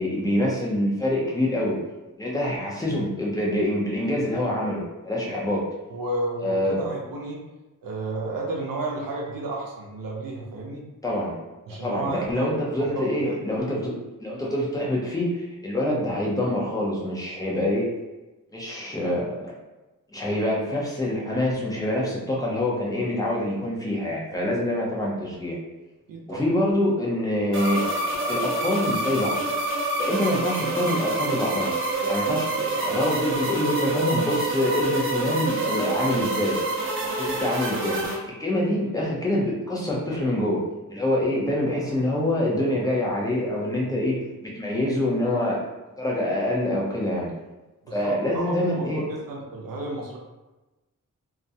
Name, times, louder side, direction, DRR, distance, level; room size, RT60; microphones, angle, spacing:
voice 1, 0.0-1.8 2.2-5.6 6.4-6.8 11.0-11.4 11.8-13.9 14.2-17.9 18.5-19.4 20.1-25.6 26.3-27.9 28.3-29.4 30.0-31.7 32.0-36.6 37.0-38.0 38.4-40.6 40.9-45.6 46.0-47.3 47.9-49.1, left 1 dB, 10° left, -4 dB, 0.5 m, -25 dB
voice 2, 5.9-7.4 7.8-10.8 11.7-12.5 13.2-13.4 26.1-26.4 47.9-50.2, right 2 dB, 90° right, -2 dB, 0.6 m, -32 dB
sound 1, 27.5-38.2, right 2 dB, 40° right, 0.5 m, -27 dB
2.4 x 2.1 x 2.7 m, 1.1 s
wide cardioid pair, 160°, 33 cm